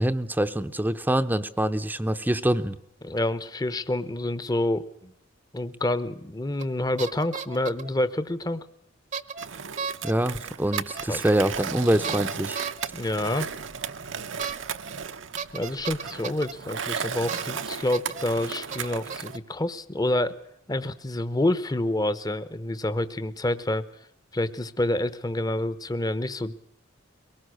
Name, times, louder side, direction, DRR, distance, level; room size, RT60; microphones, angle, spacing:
voice 1, 0.0-2.8 10.0-12.6, right 1 dB, 10° right, 10 dB, 0.7 m, -25 dB
voice 2, 3.0-5.1 5.5-8.7 11.1-11.2 12.9-13.5 15.5-20.4 20.7-23.8 24.3-26.5, left 1 dB, 20° left, 14 dB, 0.9 m, -28 dB
sound 1, 6.6-6.7 7.0-7.9 9.1-9.5 9.8-10.1 10.7-11.1 12.0-12.9 14.4-14.6 14.9-15.0 15.4-16.5 17.3-17.6 17.9-18.2 18.7-19.4, right 6 dB, 40° right, 0.9 m, -34 dB
Skateboard, 9.4-19.4, right 6 dB, 70° right, 0.9 m, -35 dB
22.5 x 19.0 x 6.4 m, 0.77 s
head